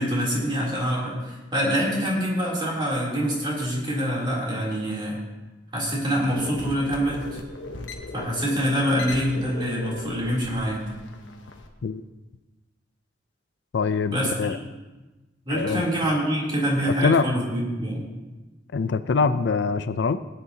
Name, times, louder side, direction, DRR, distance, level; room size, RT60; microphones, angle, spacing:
voice 1, 0.0-5.2 5.7-7.4 8.1-10.8 14.1-14.5 15.5-18.0, equal, 25° right, -4 dB, 3.2 m, -25 dB
sound 1, 6.2-11.7, left 2 dB, 85° left, 1.2 m, -38 dB
voice 2, 13.7-14.6 15.5-15.9 17.0-17.3 18.7-20.2, left 5 dB, 65° left, 12 dB, 0.4 m, -23 dB
18.0 x 9.5 x 2.8 m, 1.1 s
head